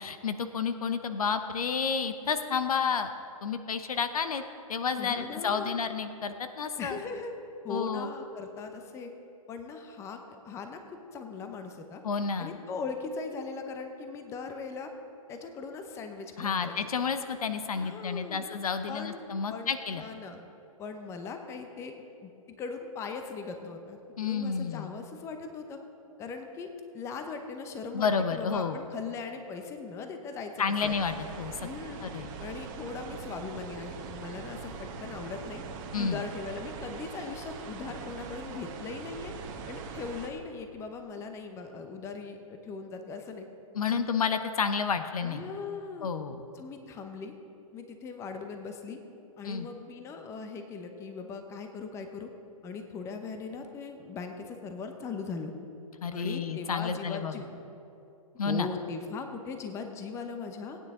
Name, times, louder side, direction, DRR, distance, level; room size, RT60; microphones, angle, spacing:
voice 1, 0.0-3.1 3.4-4.4 4.7-7.0 7.7-8.1 12.0-12.6 16.4-20.0 24.2-24.9 27.9-28.8 30.6-31.7 32.0-32.3 35.9-36.2 43.7-45.4 46.0-46.4 49.4-49.7 56.0-57.4 58.4-58.7, left 6 dB, 75° left, 9 dB, 0.8 m, -30 dB
voice 2, 5.0-5.8 6.8-7.3 7.6-9.1 9.5-10.2 10.4-12.0 12.4-14.9 15.3-16.9 17.7-18.4 18.9-19.2 19.5-20.4 20.8-22.3 22.6-25.8 26.2-30.9 31.6-32.1 32.4-35.6 35.9-39.3 39.7-43.4 45.2-46.1 46.5-47.3 47.7-49.0 49.4-52.3 52.6-55.5 56.1-57.5 58.4-60.8, left 4 dB, 15° left, 6 dB, 0.8 m, -39 dB
sound 1, 30.8-40.3, right 5 dB, 35° right, 1.2 m, -42 dB
17.5 x 9.4 x 3.7 m, 2.8 s
hypercardioid pair, 140°, 19 cm